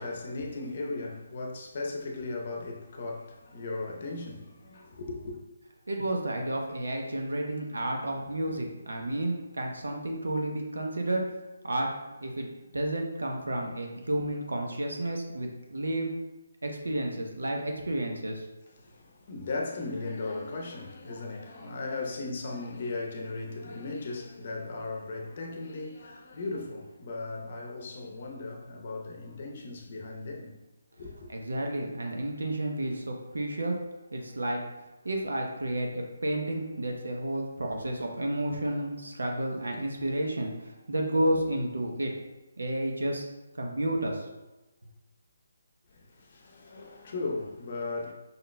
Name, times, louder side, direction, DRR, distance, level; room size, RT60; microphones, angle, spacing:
voice 1, 0.0-5.4 18.9-30.6 31.0-31.3 46.3-48.1, left 3 dB, 45° left, 0.7 m, -37 dB
voice 2, 5.9-11.2 11.6-11.9 12.2-16.1 16.6-18.4 31.3-33.8 34.1-34.6 35.0-42.1 42.6-43.2 43.6-44.2, right 1 dB, 80° right, 0.8 m, -31 dB
5.4 x 3.9 x 2.2 m
figure-of-eight pair, 155°, 0 cm